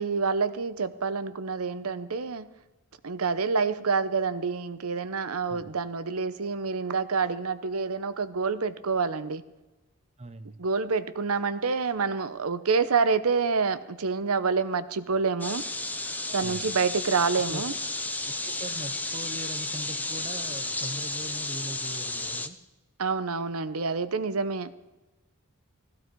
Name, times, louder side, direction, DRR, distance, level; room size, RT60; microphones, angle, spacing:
voice 1, 0.0-2.5 3.0-9.4 10.6-15.6 16.3-17.7 23.0-24.7, right 5 dB, 85° right, 0.8 m, -27 dB
voice 2, 10.2-10.6 16.3-16.8 17.3-17.6 18.2-22.6, right 1 dB, 30° right, 0.7 m, -41 dB
sound 1, 15.4-22.5, left 2 dB, 10° left, 0.7 m, -33 dB
17.0 x 15.0 x 4.6 m
head